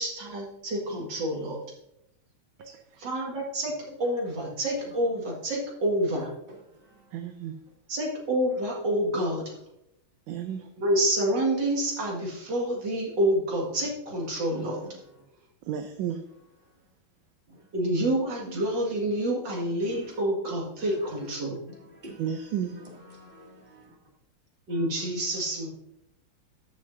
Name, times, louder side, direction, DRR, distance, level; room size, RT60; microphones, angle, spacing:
voice 1, 0.0-1.6 3.0-3.7 4.0-6.3 7.9-9.6 10.8-14.8 17.7-21.6 24.7-25.7, right 1 dB, 60° right, 2.4 m, -28 dB
voice 2, 7.1-7.6 10.3-10.7 15.6-16.2 22.2-22.8, right 9 dB, 75° right, 1.3 m, -32 dB
voice 3, 21.7-22.2 23.1-23.9 24.7-24.9, right 1 dB, 25° right, 2.4 m, -48 dB
14.0 x 6.5 x 2.6 m
omnidirectional pair, 2.4 m